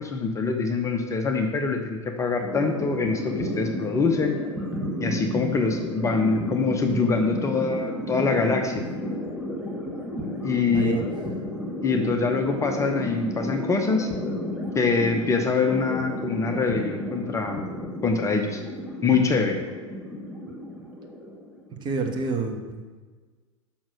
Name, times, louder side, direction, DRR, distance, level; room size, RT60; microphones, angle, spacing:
voice 1, 0.0-4.3 5.0-8.8 10.4-10.9 11.8-14.1 14.7-17.7 18.0-18.6 19.0-19.6, left 4 dB, 20° left, 4 dB, 0.8 m, -24 dB
sound 1, 2.4-21.9, left 1 dB, 5° right, 2.1 m, -32 dB
voice 2, 10.7-11.0 14.6-14.7 21.8-22.8, right 4 dB, 30° right, 2 dB, 1.3 m, -28 dB
6.2 x 6.0 x 6.3 m, 1.4 s
figure-of-eight pair, 90°, 16 cm